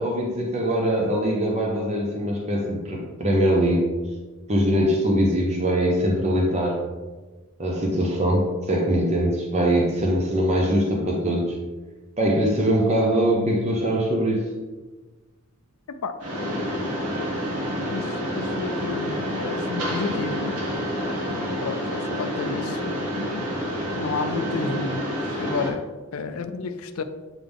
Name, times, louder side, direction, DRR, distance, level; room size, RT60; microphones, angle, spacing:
voice 1, 0.0-3.9 4.5-6.8 7.6-11.6 12.2-14.4, equal, 30° right, -2 dB, 0.8 m, -22 dB
Mechanisms, 16.2-25.7, equal, 85° right, 1.4 m, -28 dB
voice 2, 17.9-20.6 21.0-23.0 23.9-27.0, left 4 dB, 70° left, 9 dB, 0.4 m, -32 dB
7.9 x 3.8 x 3.5 m, 1.3 s
head